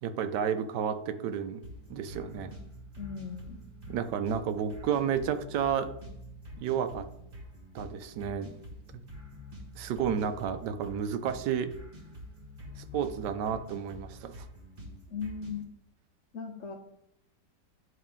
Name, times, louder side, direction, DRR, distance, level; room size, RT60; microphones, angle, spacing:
voice 1, 0.0-1.6 1.9-2.5 3.9-5.9 6.6-7.1 7.7-8.5 9.8-11.7 12.8-14.5, right 8 dB, 75° right, 10 dB, 1.2 m, -31 dB
sound 1, 1.6-15.6, left 1 dB, 35° right, 1.4 m, -47 dB
voice 2, 3.0-3.6 15.1-15.6 16.3-16.7, left 5 dB, 55° left, 1 dB, 0.9 m, -38 dB
10.5 x 3.6 x 3.5 m, 0.77 s
omnidirectional pair, 1.9 m